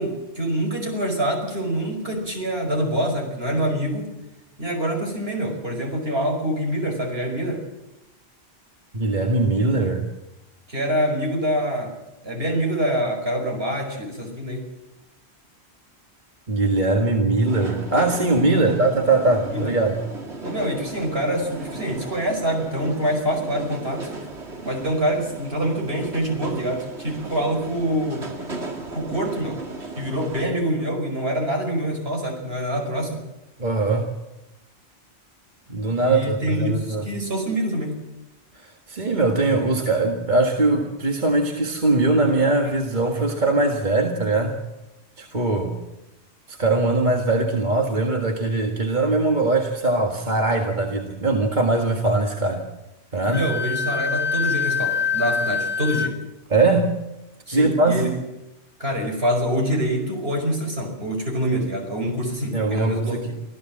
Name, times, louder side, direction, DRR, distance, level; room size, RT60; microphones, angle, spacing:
voice 1, 0.0-4.1 4.6-7.6 10.7-11.9 12.2-14.6 18.5-18.7 19.5-19.7 20.5-24.1 24.7-28.3 28.9-29.6 30.0-33.2 36.0-38.0 53.3-56.2 57.5-58.1 58.8-63.3, equal, 65° right, 2 dB, 5.5 m, -25 dB
voice 2, 8.9-10.0 16.5-20.0 33.6-34.1 35.7-37.1 38.6-44.6 45.2-45.8 46.5-52.7 53.1-53.4 56.5-56.9 57.5-58.1 62.5-63.3, right 2 dB, 45° right, 2 dB, 1.9 m, -21 dB
sound 1, 17.5-30.5, right 3 dB, 80° right, 2.6 m, -36 dB
Wind instrument woodwind instrument, 53.3-56.1, left 5 dB, 10° left, 1.3 m, -25 dB
26.0 x 15.5 x 7.6 m, 0.94 s
omnidirectional pair, 1.1 m